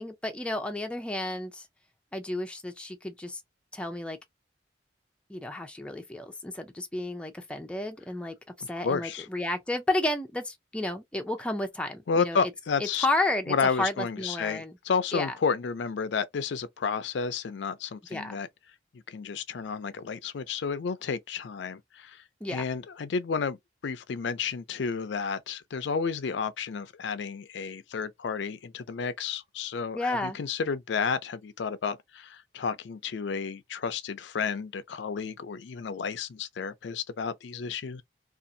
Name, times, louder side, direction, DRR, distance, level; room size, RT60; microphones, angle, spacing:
voice 1, 0.0-1.7 2.1-3.4 3.7-4.2 5.3-8.4 8.7-12.5 12.8-14.7 15.1-15.3 18.1-18.4 22.4-22.6 29.9-30.4, left 2 dB, 5° left, 0.5 m, -32 dB
voice 2, 8.6-9.3 12.1-13.1 13.5-18.5 19.1-38.0, left 5 dB, 75° left, 0.4 m, -31 dB
2.6 x 2.4 x 2.6 m
head